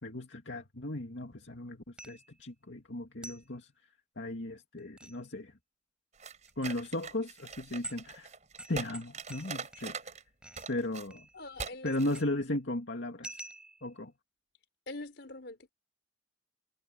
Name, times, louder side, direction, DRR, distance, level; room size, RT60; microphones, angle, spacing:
voice 1, 0.0-3.7 4.2-5.5 6.6-8.3 8.7-10.0 10.7-11.3 11.8-13.4 13.8-14.1, left 1 dB, 85° left, 2.2 m, -36 dB
sound 1, 2.0-2.4 3.2-3.5 4.8-5.2 6.5-6.7 7.4-7.5 7.8-8.1 8.6-10.1 10.4-10.7 11.1-11.6 11.9-12.5 13.2-14.0, right 2 dB, 5° right, 7.8 m, -48 dB
sound 2, 6.2-10.2 10.5-11.1 11.6-11.7 12.0-12.2, right 5 dB, 40° right, 6.3 m, -42 dB
voice 2, 11.3-11.9 14.9-15.7, left 2 dB, 65° left, 4.6 m, -44 dB
head